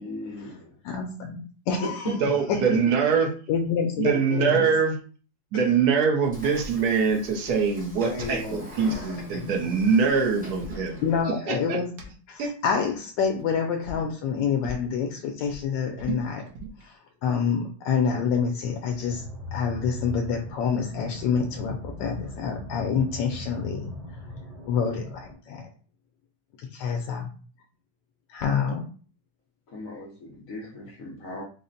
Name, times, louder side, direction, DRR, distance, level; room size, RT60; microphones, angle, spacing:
voice 1, 0.0-0.7 1.8-3.2 4.3-4.7 5.5-5.7 8.0-8.6 29.7-31.4, left 2 dB, 55° left, -2 dB, 1.0 m, -37 dB
voice 2, 0.8-1.4 1.7-2.0 2.5-2.8 3.5-4.7 8.9-9.0 9.3-9.4 11.0-11.9 12.3-16.5 16.8-19.2 19.5-23.9 24.6-25.7 26.6-27.3 28.3-28.8, left 6 dB, 75° left, 2 dB, 1.2 m, -27 dB
voice 3, 2.1-3.3 4.0-4.9 5.5-11.8 12.4-12.5, right 6 dB, 65° right, 2 dB, 1.1 m, -24 dB
Train / Sliding door, 6.2-11.3, left 2 dB, 5° right, 0.8 m, -43 dB
sound 1, 8.2-8.4 8.7-9.2 10.3-11.6 12.0-12.1 13.1-13.5 13.8-14.1 14.6-14.9 15.3-16.8, right 4 dB, 80° right, 1.5 m, -38 dB
sound 2, 18.9-25.3, left 2 dB, 35° right, 1.1 m, -39 dB
4.1 x 2.1 x 3.8 m, 0.40 s
omnidirectional pair, 2.0 m